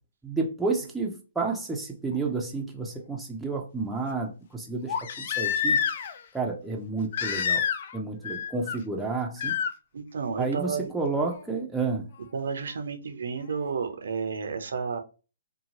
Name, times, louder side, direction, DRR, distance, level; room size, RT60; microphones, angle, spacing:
voice 1, 0.2-5.8 6.3-7.7 7.9-9.5 10.4-12.1, right 3 dB, 5° right, 0.5 m, -30 dB
Crying sobbing, 2.2-2.3 4.9-6.2 7.1-8.0 8.2-8.8 9.4-9.7 11.3-11.4, left 7 dB, 50° left, 0.3 m, -28 dB
voice 2, 9.9-10.9 12.3-15.0, right 5 dB, 65° right, 0.5 m, -31 dB
2.7 x 2.2 x 2.8 m
figure-of-eight pair, 135°, 0 cm